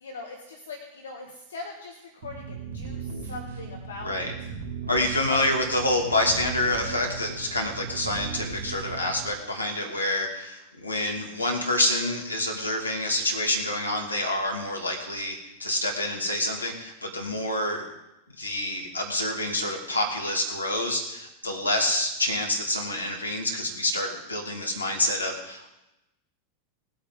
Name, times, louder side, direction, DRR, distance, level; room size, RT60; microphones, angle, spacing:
voice 1, 0.0-4.3 5.2-5.4, left 3 dB, 65° left, 2 dB, 1.5 m, -40 dB
sound 1, 2.2-9.3, right 5 dB, 50° right, 3.1 m, -37 dB
voice 2, 4.0-4.3 4.9-17.9 18.3-25.7, left 1 dB, 85° left, 1 dB, 2.4 m, -27 dB
18.5 x 8.3 x 5.2 m, 0.94 s
figure-of-eight pair, 90°, 0 cm